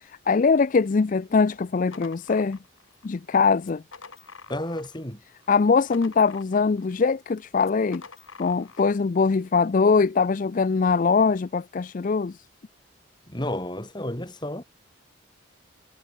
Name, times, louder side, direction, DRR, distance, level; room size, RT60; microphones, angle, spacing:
voice 1, 0.0-2.6 3.0-3.8 5.5-8.0 8.4-12.4, left 4 dB, 40° left, 0.4 m, -22 dB
sound 1, 1.9-3.1 3.6-5.1 5.4-6.9 7.6-9.0, left 5 dB, 80° left, 3.6 m, -47 dB
voice 2, 4.5-5.2 13.3-14.6, left 1 dB, 20° left, 3.7 m, -31 dB
head